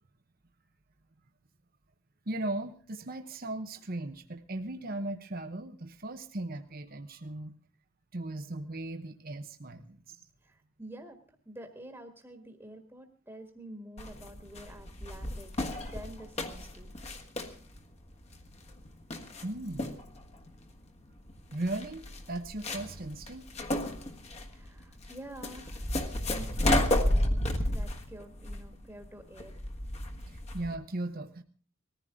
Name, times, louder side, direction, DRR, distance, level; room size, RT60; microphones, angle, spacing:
voice 1, 2.3-7.5 8.1-10.0 19.4-20.0 21.5-23.4 30.5-31.4, right 2 dB, 45° right, 7 dB, 1.0 m, -37 dB
voice 2, 10.4-11.2 11.4-16.9 24.5-25.9 26.3-29.6, right 1 dB, 10° right, 4 dB, 1.6 m, -48 dB
sound 1, 14.0-30.8, left 1 dB, 30° left, 1.4 m, -32 dB
20.0 x 14.5 x 3.7 m, 0.40 s
head